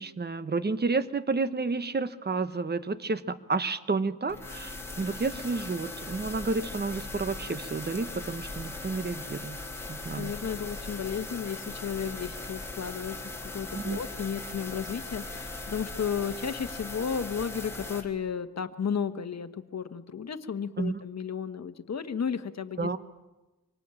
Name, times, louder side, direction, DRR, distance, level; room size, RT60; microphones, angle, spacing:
voice 1, 0.0-9.6 9.9-10.3 13.7-14.0 20.8-20.9 22.8-23.0, right 4 dB, 30° right, 13 dB, 1.2 m, -31 dB
sound 1, 4.3-18.0, left 2 dB, 5° left, 3.3 m, -39 dB
voice 2, 9.8-22.9, left 7 dB, 50° left, 9 dB, 1.4 m, -33 dB
25.5 x 19.0 x 9.1 m, 1.1 s
cardioid pair, 85°, 34 cm